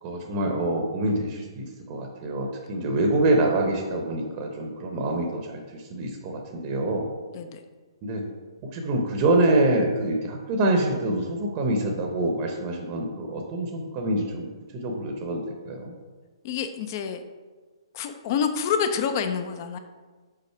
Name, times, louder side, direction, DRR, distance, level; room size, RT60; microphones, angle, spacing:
voice 1, 0.0-5.6 5.9-7.1 8.0-8.2 8.7-15.9, right 2 dB, 30° right, 2 dB, 0.8 m, -26 dB
voice 2, 16.4-17.2 17.9-19.8, left 7 dB, 40° left, 8 dB, 0.5 m, -27 dB
5.6 x 4.0 x 4.5 m, 1.4 s
figure-of-eight pair, 130°, 3 cm